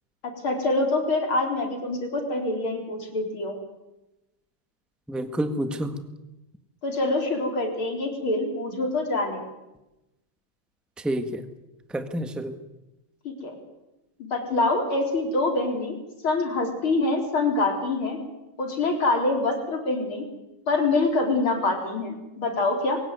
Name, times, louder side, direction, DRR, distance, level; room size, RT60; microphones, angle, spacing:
voice 1, 0.2-3.6 6.8-9.4 13.2-13.5 14.2-16.0 16.2-18.2 18.6-20.3 20.7-23.0, left 2 dB, 75° left, 3 dB, 4.7 m, -25 dB
voice 2, 5.1-6.0 11.0-11.4 11.9-12.5, right 1 dB, ahead, 8 dB, 1.3 m, -29 dB
23.0 x 17.5 x 9.5 m, 1.0 s
omnidirectional pair, 2.3 m